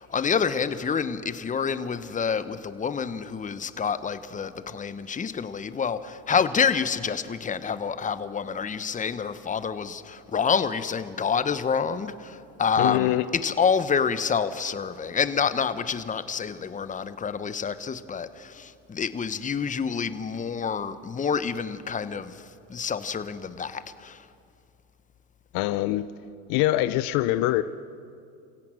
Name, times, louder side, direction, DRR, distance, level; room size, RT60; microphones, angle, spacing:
voice 1, 0.0-24.3, left 6 dB, 20° left, 1.0 m, -28 dB
voice 2, 12.8-13.3 25.5-26.1 26.5-27.6, left 16 dB, 60° left, 0.8 m, -23 dB
28.5 x 17.0 x 6.4 m
supercardioid pair, 95°, 40 cm